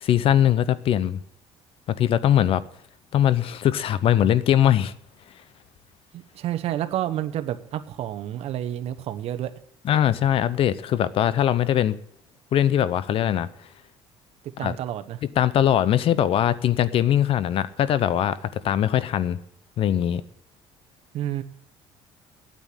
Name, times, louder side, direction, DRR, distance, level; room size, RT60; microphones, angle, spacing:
voice 1, 0.0-1.2 1.9-2.6 3.1-4.9 9.8-12.0 12.5-13.5 14.6-14.8 15.2-19.4 19.8-20.2, left 10 dB, 55° left, 17 dB, 0.7 m, -21 dB
voice 2, 6.1-9.5 14.6-15.2 21.1-21.4, right 12 dB, 60° right, 10 dB, 1.1 m, -29 dB
9.2 x 8.6 x 9.7 m, 0.72 s
cardioid pair, 115°, 12 cm